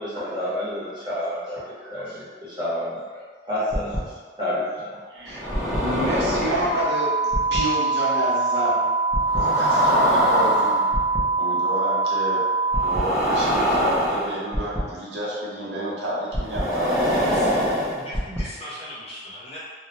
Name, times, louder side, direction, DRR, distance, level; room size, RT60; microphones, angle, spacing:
voice 1, 0.0-3.0 3.5-4.0 4.4-4.9 5.4-5.8, left 1 dB, 25° right, -10 dB, 0.9 m, -29 dB
sound 1, 3.7-4.0 5.3-6.8 7.3-7.6 9.1-11.2 12.7-14.8 16.3-18.4, equal, ahead, 0.6 m, -23 dB
voice 2, 5.1-8.8 9.3-10.8 11.4-12.5 12.8-17.5, equal, 65° right, -7 dB, 0.6 m, -29 dB
sound 2, 6.7-12.9, right 3 dB, 90° left, 0.4 m, -23 dB
voice 3, 17.9-19.6, left 1 dB, 30° left, -9 dB, 0.7 m, -38 dB
2.3 x 2.1 x 2.8 m, 1.5 s
head